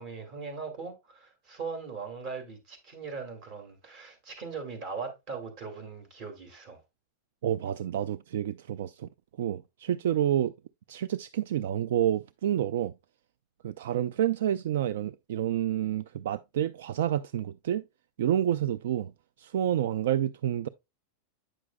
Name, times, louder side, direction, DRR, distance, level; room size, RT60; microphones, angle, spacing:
voice 1, 0.0-6.8, right 5 dB, 40° right, 2.3 m, -40 dB
voice 2, 7.4-9.1 9.4-10.5 10.9-12.9 13.6-17.8 18.2-19.1 19.4-20.7, right 11 dB, 75° right, 0.3 m, -29 dB
8.7 x 6.2 x 2.2 m
supercardioid pair, 160°, 0 cm